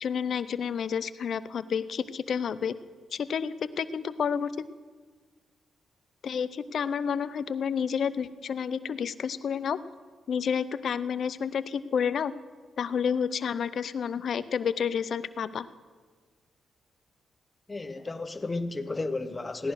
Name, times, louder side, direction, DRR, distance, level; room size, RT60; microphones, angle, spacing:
voice 1, 0.0-2.7 3.1-4.6 6.2-9.8 10.3-12.3 12.8-15.7, left 7 dB, 65° left, 15 dB, 0.6 m, -30 dB
voice 2, 17.7-19.7, left 3 dB, 25° left, 11 dB, 1.0 m, -33 dB
16.5 x 11.0 x 6.4 m, 1.5 s
cardioid pair, 75°, 0 cm